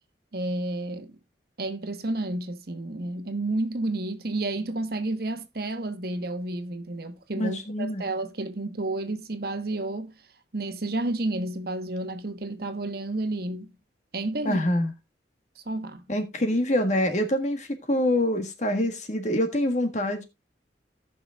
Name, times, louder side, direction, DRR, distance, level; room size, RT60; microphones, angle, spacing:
voice 1, 0.3-1.2 1.6-10.1 10.5-13.7 14.1-14.6 15.6-16.0, right 2 dB, 55° right, 1.2 m, -31 dB
voice 2, 7.4-8.0 14.4-14.9 16.1-20.2, left 1 dB, 40° left, 1.7 m, -25 dB
18.0 x 6.0 x 2.4 m
head